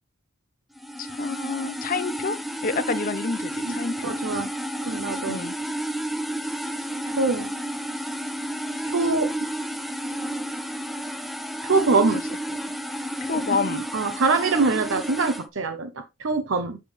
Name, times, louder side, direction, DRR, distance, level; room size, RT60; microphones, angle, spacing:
sound 1, 0.8-15.4, right 1 dB, ahead, 0.5 m, -31 dB
voice 1, 1.0-2.4 2.6-4.2 5.3-5.6 12.0-12.2 13.2-13.8, left 4 dB, 45° left, 0.8 m, -28 dB
voice 2, 4.0-4.5 4.8-5.4 7.2-7.5 8.8-9.3 11.6-12.2 13.9-16.8, right 4 dB, 75° right, 0.7 m, -24 dB
8.3 x 5.2 x 3.3 m
head